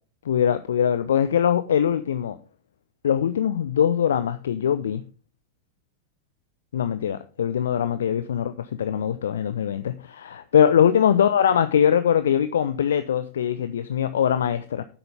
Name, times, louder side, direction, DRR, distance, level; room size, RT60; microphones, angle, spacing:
voice 1, 0.2-2.4 3.0-5.0 6.7-14.8, left 9 dB, 65° left, 0.6 m, -22 dB
9.9 x 7.9 x 3.4 m
figure-of-eight pair, 90°, 0 cm